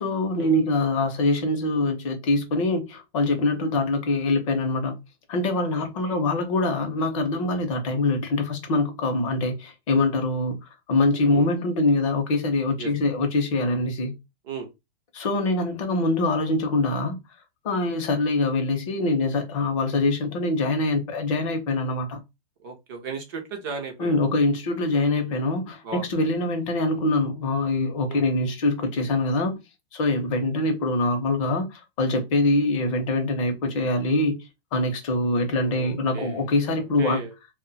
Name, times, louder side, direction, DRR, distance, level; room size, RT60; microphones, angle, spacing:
voice 1, 0.0-5.0 5.3-10.6 10.9-14.1 15.1-17.2 17.6-22.2 24.0-29.6 29.9-34.4 34.7-37.2, left 2 dB, 30° left, 0.6 m, -24 dB
voice 2, 5.7-6.2 11.3-11.5 12.8-12.9 14.4-14.7 22.6-24.2 25.8-26.1 28.1-28.3 35.6-37.3, right 5 dB, 20° right, 0.4 m, -36 dB
2.1 x 2.1 x 3.8 m
supercardioid pair, 165°, 32 cm